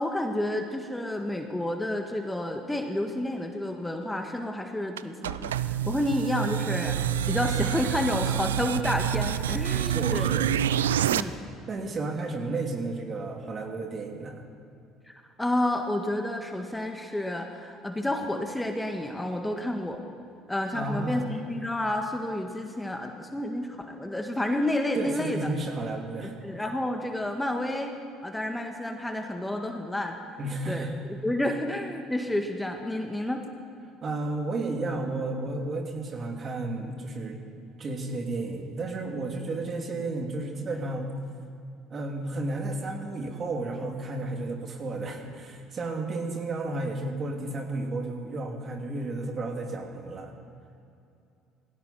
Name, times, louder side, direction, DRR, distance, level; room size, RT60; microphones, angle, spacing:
voice 1, 0.0-10.4 11.1-11.4 15.1-20.0 20.5-25.5 26.4-27.9 28.2-30.2 30.7-30.9 31.2-33.4, left 1 dB, 10° left, 4 dB, 1.7 m, -30 dB
sound 1, 5.0-11.2, right 10 dB, 90° right, 0.4 m, -27 dB
voice 2, 9.8-10.5 11.7-14.4 20.7-21.3 24.9-26.4 30.4-31.0 34.0-37.4 37.8-41.1 41.9-50.3, right 2 dB, 40° right, 2 dB, 2.7 m, -32 dB
20.0 x 16.0 x 4.4 m, 2.6 s
hypercardioid pair, 65°, 0 cm